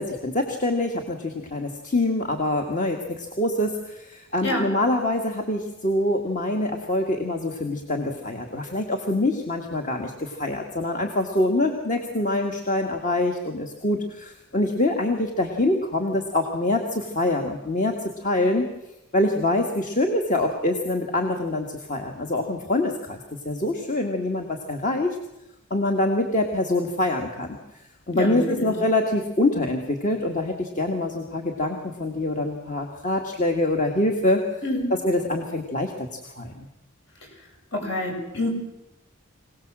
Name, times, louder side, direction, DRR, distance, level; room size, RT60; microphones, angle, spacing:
voice 1, 0.0-18.0 18.2-18.7 19.1-23.2 23.5-25.2 25.7-27.6 28.1-34.4 34.9-36.1 36.4-36.7, left 1 dB, 40° left, 3 dB, 1.8 m, -25 dB
voice 2, 28.1-28.7 34.6-34.9 37.7-38.5, left 1 dB, 65° left, 1 dB, 7.6 m, -27 dB
26.0 x 18.0 x 7.5 m, 0.93 s
head